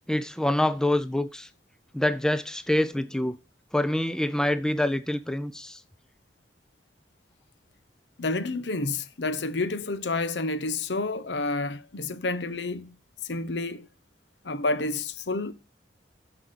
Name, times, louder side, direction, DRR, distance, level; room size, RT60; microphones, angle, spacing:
voice 1, 0.1-1.5 1.9-3.4 3.7-5.8, left 1 dB, 5° left, 0.5 m, -26 dB
voice 2, 8.2-12.9 13.3-13.9 14.4-15.5, left 3 dB, 70° left, 0.9 m, -29 dB
9.9 x 6.0 x 5.1 m
head